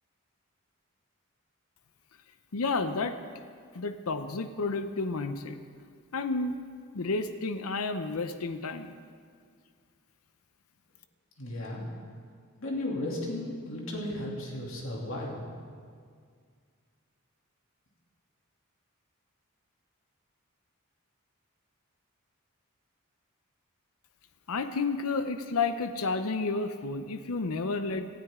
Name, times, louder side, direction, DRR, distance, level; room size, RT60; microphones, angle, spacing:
voice 1, 2.5-3.2 3.7-5.6 6.1-6.6 6.9-8.9 24.5-28.1, left 3 dB, 80° left, 9 dB, 0.7 m, -31 dB
voice 2, 11.4-11.9 12.6-15.4, left 1 dB, 60° left, -2 dB, 2.8 m, -35 dB
18.5 x 13.0 x 3.7 m, 2.1 s
head